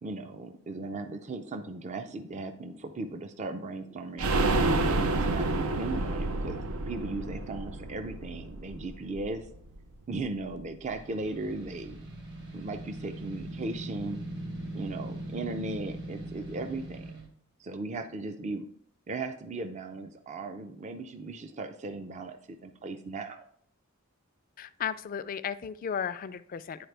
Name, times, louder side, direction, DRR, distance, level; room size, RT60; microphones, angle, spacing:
voice 1, 0.0-4.3 4.8-9.5 10.1-12.0 12.5-14.2 14.7-17.1 17.6-18.7 19.1-23.5, right 2 dB, 35° right, 7 dB, 0.4 m, -37 dB
sound 1, 4.2-9.8 10.1-10.2 10.5-10.6, right 2 dB, 85° right, 0.6 m, -29 dB
sound 2, 10.9-17.3, right 1 dB, 55° right, 1.5 m, -40 dB
voice 2, 24.6-26.9, left 7 dB, 40° left, 14 dB, 0.3 m, -34 dB
10.5 x 4.3 x 3.3 m, 0.63 s
head